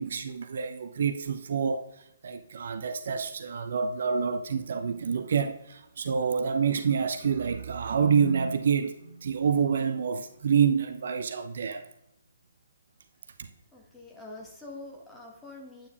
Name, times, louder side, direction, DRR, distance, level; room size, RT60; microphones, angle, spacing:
voice 1, 0.0-11.9 13.4-13.5, right 6 dB, 50° right, 0.4 m, -27 dB
voice 2, 13.7-15.9, left 2 dB, 5° left, 1.5 m, -45 dB
9.3 x 8.6 x 2.5 m
figure-of-eight pair, 130°, 0 cm